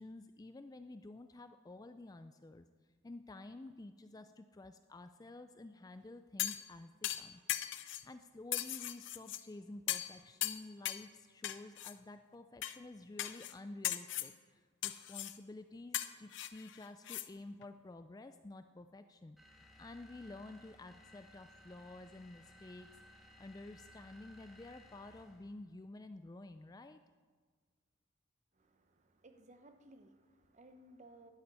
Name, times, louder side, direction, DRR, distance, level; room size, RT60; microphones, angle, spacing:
voice 1, 0.0-2.7 3.0-7.4 8.0-19.4 19.8-27.0, left 2 dB, 20° left, 9 dB, 0.3 m, -51 dB
sound 1, 6.4-6.7 7.0-8.0 8.5-9.4 9.9-10.1 10.4-11.1 11.4-11.9 12.6-12.8 13.2-13.5 13.8-14.3 14.8-15.4 15.9-17.3 17.6-17.7, left 13 dB, 60° left, 0.6 m, -38 dB
sound 2, 19.4-25.5, left 1 dB, ahead, 1.6 m, -60 dB
voice 2, 28.6-31.3, right 1 dB, 35° right, 8 dB, 0.9 m, -60 dB
13.0 x 6.9 x 9.4 m, 1.5 s
head